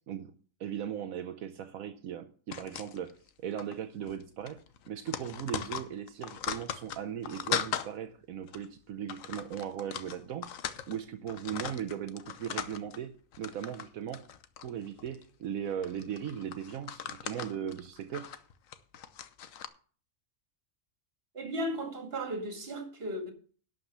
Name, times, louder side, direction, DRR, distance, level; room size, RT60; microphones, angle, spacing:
voice 1, 0.6-10.5 10.9-13.1 13.4-14.3 14.6-18.3, right 9 dB, 85° right, 1.2 m, -38 dB
sound 1, 2.5-3.3 3.6-3.8 4.0-4.2 4.5-7.9 8.5-8.7 9.1-11.0 11.3-13.0 13.3-13.9 14.1-15.2 15.8-19.7, left 8 dB, 75° left, 1.2 m, -38 dB
voice 2, 21.3-23.3, equal, 45° right, 2.3 m, -35 dB
11.5 x 5.2 x 7.9 m
omnidirectional pair, 1.4 m